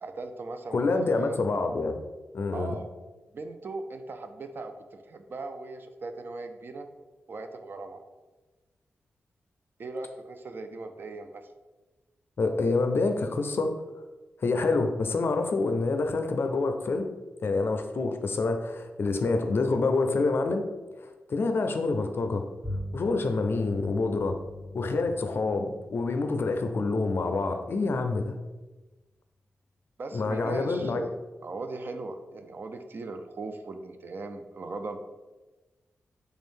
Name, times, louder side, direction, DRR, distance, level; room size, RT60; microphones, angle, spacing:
voice 1, 0.0-1.4 2.5-2.9 3.3-6.9 7.3-8.0 9.8-11.5 30.0-35.0, right 3 dB, 50° right, 7 dB, 0.4 m, -39 dB
voice 2, 0.7-2.0 2.3-2.8 12.4-13.7 14.4-17.1 17.4-20.6 21.0-22.4 22.9-24.4 24.7-28.4 30.1-31.1, left 3 dB, 60° left, 6 dB, 0.4 m, -27 dB
Bowed string instrument, 22.6-28.3, left 1 dB, 10° right, 1.5 m, -42 dB
3.4 x 2.6 x 3.6 m, 1.2 s
cardioid pair, 70°, 4 cm